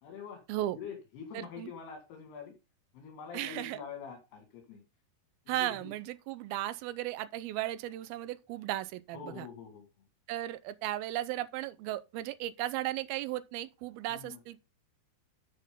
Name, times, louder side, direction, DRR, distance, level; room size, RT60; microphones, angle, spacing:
voice 1, 0.0-0.4 0.7-2.5 2.9-4.8 5.5-5.9 9.1-9.9 14.1-14.4, left 7 dB, 80° left, 4.0 m, -45 dB
voice 2, 1.3-1.7 3.3-3.8 5.5-9.5 10.3-14.6, right 14 dB, 80° right, 2.4 m, -36 dB
11.5 x 6.5 x 3.7 m
omnidirectional pair, 4.6 m